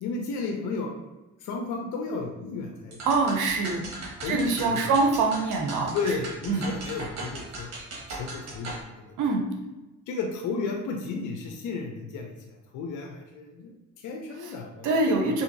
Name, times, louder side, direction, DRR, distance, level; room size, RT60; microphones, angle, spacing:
voice 1, 0.0-0.9 1.4-3.0 4.2-4.9 5.9-7.7 8.1-9.1 10.1-15.4, left 4 dB, 80° left, 2 dB, 0.6 m, -33 dB
sound 1, 2.9-8.8, right 2 dB, 60° right, 1.3 m, -39 dB
voice 2, 3.0-3.9 4.2-6.2 6.5-6.7 9.2-9.4 14.4-14.5 14.8-15.4, right 3 dB, 85° right, 2 dB, 0.6 m, -24 dB
3.7 x 2.7 x 2.6 m, 1.1 s
cardioid pair, 90°, 30 cm